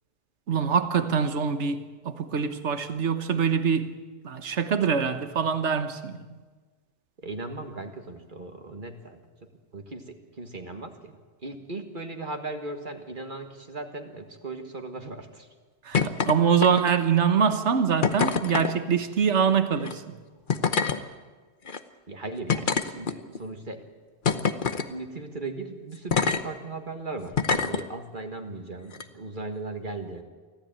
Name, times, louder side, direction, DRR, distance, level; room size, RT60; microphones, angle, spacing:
voice 1, 0.5-3.9 4.2-6.2 15.8-20.2, right 6 dB, 80° right, 1.5 m, -24 dB
voice 2, 7.2-9.2 9.7-11.1 11.4-15.5 22.1-23.8 24.9-30.2, right 2 dB, 45° right, 1.9 m, -37 dB
sound 1, 15.9-16.3 16.6-17.1 18.0-18.7 19.8-19.9 20.5-21.0 21.7-21.8 22.5-23.4 24.2-24.9 26.1-26.4 27.3-27.8 28.9-29.0, left 5 dB, 50° left, 1.1 m, -25 dB
24.5 x 15.5 x 9.0 m
omnidirectional pair, 1.2 m